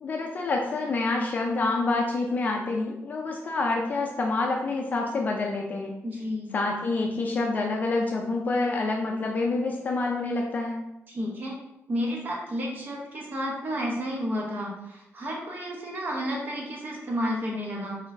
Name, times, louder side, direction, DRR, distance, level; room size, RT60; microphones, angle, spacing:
voice 1, 0.0-5.9 6.5-10.9, left 3 dB, 35° left, 0 dB, 0.4 m, -27 dB
voice 2, 6.0-6.5 11.1-11.6 11.9-18.0, equal, 40° right, -1 dB, 0.9 m, -31 dB
4.0 x 3.8 x 2.6 m, 0.87 s
wide cardioid pair, 175°, 5 cm